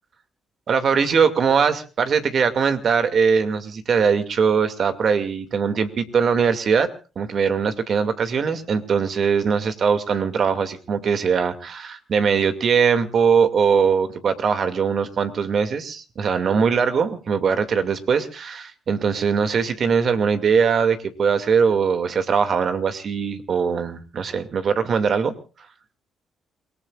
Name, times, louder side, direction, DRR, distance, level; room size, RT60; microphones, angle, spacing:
voice 1, 0.7-6.9 7.2-25.3, right 6 dB, 55° right, 9 dB, 2.4 m, -21 dB
28.5 x 19.0 x 2.5 m, 0.36 s
cardioid pair, 90°, 0 cm